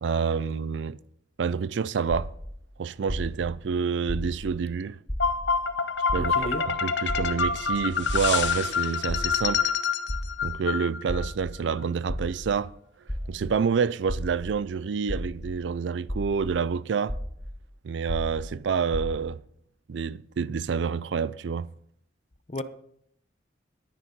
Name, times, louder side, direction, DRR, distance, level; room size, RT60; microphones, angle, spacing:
voice 1, 0.0-1.0 1.4-2.3 2.8-5.0 6.1-9.7 10.4-12.7 13.3-17.2 17.8-19.4 19.9-21.7, right 6 dB, 75° right, 0.4 m, -28 dB
sound 1, 2.1-2.5 3.1-3.5 4.1-4.5 5.1-5.5 6.1-6.5 7.1-7.5 8.1-8.5 9.1-9.5 10.1-10.5 11.1-11.5 12.1-12.5 13.1-13.5 14.1-14.5 15.1-15.5 16.1-16.5 17.1-17.5 18.1-18.4 18.9-19.0, equal, 15° left, 1.3 m, -32 dB
sound 2, 5.2-11.3, left 5 dB, 75° left, 0.8 m, -27 dB
voice 2, 6.2-6.6 22.5-22.6, left 1 dB, 35° left, 0.8 m, -32 dB
10.5 x 9.7 x 5.2 m
head